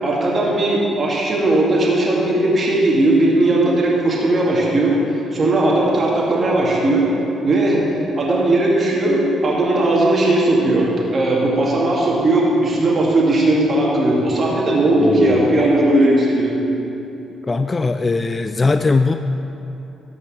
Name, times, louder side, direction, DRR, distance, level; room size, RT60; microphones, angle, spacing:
voice 1, 0.0-5.0 5.3-7.1 7.4-7.9 8.1-16.5, right 2 dB, 40° right, -4 dB, 2.3 m, -17 dB
voice 2, 15.0-15.9 17.5-19.1, left 3 dB, 25° left, 8 dB, 0.4 m, -19 dB
14.0 x 5.3 x 6.2 m, 2.9 s
cardioid pair, 90°, 0 cm